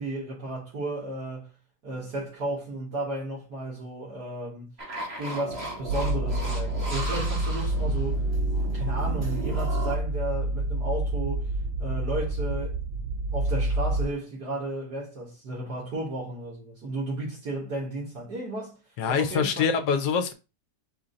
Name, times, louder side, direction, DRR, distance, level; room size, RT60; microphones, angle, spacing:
voice 1, 0.0-1.5 1.8-4.7 5.2-8.2 8.7-11.5 11.8-12.8 13.3-18.8 19.1-19.7, right 1 dB, 65° right, 2.3 m, -33 dB
sound 1, 4.8-10.0, right 2 dB, 40° right, 2.0 m, -36 dB
sound 2, 5.9-14.1, right 1 dB, 90° right, 1.4 m, -28 dB
voice 2, 19.0-20.3, left 6 dB, 75° left, 1.3 m, -25 dB
5.0 x 2.8 x 3.8 m
omnidirectional pair, 1.8 m